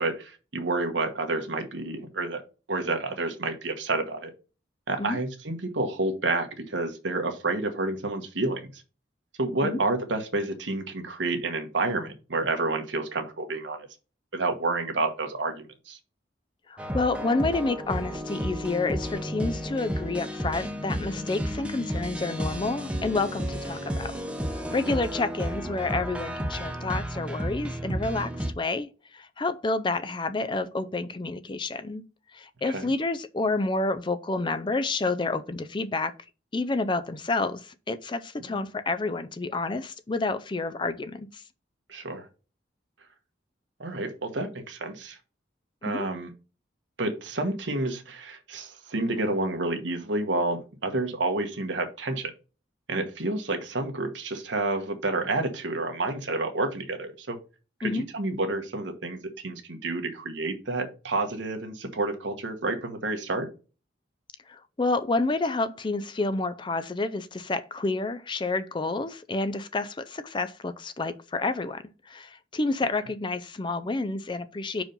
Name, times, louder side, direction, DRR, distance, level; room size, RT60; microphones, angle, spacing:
voice 1, 0.0-2.4 2.7-4.3 4.9-8.7 9.4-13.9 14.3-16.0 24.9-25.0 32.7-32.9 38.5-38.6 41.9-42.2 43.8-45.2 45.8-46.3 47.0-52.3 52.9-57.4 57.8-59.2 59.4-63.5, right 2 dB, 80° right, 1.2 m, -29 dB
voice 2, 16.7-24.1 24.7-32.1 32.3-36.1 36.5-41.4 45.8-46.1 57.8-58.0 64.5-74.8, left 3 dB, 25° left, 0.4 m, -29 dB
sound 1, 16.8-28.5, equal, 5° right, 0.8 m, -32 dB
5.3 x 4.9 x 5.3 m
head